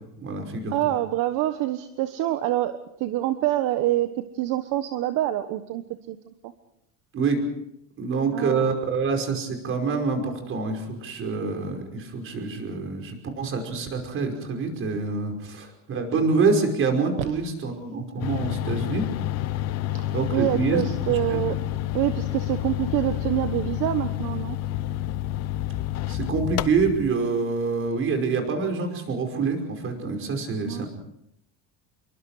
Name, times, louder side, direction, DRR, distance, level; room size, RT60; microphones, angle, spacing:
voice 1, 0.0-0.7 7.1-7.4 8.0-19.1 20.1-20.8 21.1-21.4 26.1-30.9, right 4 dB, 35° right, 4 dB, 5.4 m, -26 dB
voice 2, 0.7-2.7 3.0-4.1 4.3-6.2 6.4-6.5 8.3-8.7 19.9-21.6 21.9-24.6 30.6-30.8, right 14 dB, 60° right, 9 dB, 1.3 m, -26 dB
sound 1, 18.2-27.1, left 14 dB, 45° left, 0.7 m, -29 dB
27.5 x 23.5 x 5.0 m, 0.77 s
cardioid pair, 145°, 35 cm